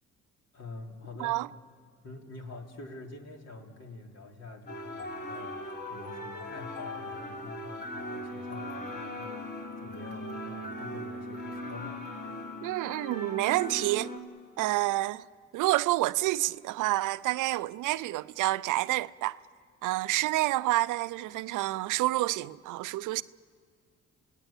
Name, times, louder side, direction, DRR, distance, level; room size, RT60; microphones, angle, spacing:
voice 1, 0.5-1.6 2.0-12.1, left 2 dB, 55° left, 3.7 m, -46 dB
sound 1, 4.7-14.2, left 1 dB, 35° left, 3.8 m, -39 dB
voice 2, 12.6-14.1 14.6-15.2 15.5-19.4 19.8-23.2, right 17 dB, 85° right, 0.5 m, -28 dB
28.5 x 17.5 x 9.0 m
cardioid pair, 90°, 30 cm